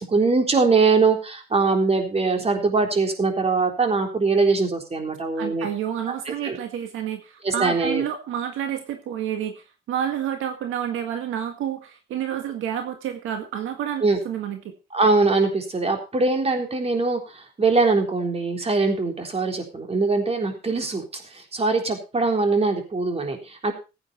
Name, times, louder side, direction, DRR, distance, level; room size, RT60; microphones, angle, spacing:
voice 1, 0.1-5.7 6.3-6.6 7.4-8.0 14.0-14.2 14.9-23.7, right 3 dB, 30° right, 4 dB, 3.8 m, -22 dB
voice 2, 5.4-14.7, right 9 dB, 85° right, 6 dB, 1.8 m, -29 dB
15.5 x 9.0 x 4.3 m, 0.30 s
cardioid pair, 90°, 20 cm